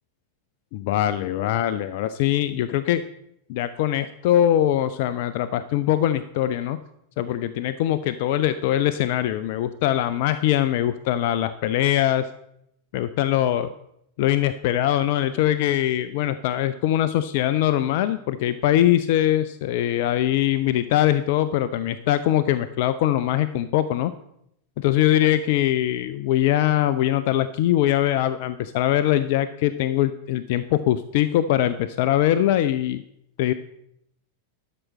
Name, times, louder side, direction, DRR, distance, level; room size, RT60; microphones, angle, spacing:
voice 1, 0.7-3.0 3.5-6.8 7.2-12.3 12.9-13.7 14.2-24.1 24.8-33.0 33.4-33.5, left 12 dB, 50° left, 13 dB, 0.4 m, -22 dB
12.0 x 6.2 x 4.2 m, 0.76 s
figure-of-eight pair, 90°, 0 cm